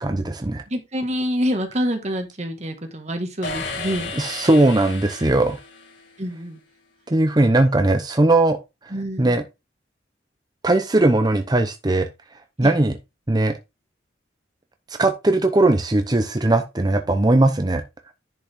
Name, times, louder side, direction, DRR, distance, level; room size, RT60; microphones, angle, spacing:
voice 1, 0.0-0.6 4.2-5.6 7.1-8.6 9.2-9.4 10.6-12.1 12.6-12.9 13.3-13.6 14.9-17.8, right 2 dB, 20° right, 0.7 m, -19 dB
voice 2, 0.7-4.1 6.2-6.6 8.9-9.4 12.6-12.8, equal, 40° right, 1.8 m, -27 dB
sound 1, 3.4-6.3, left 3 dB, 85° left, 3.1 m, -33 dB
10.5 x 5.4 x 3.6 m
head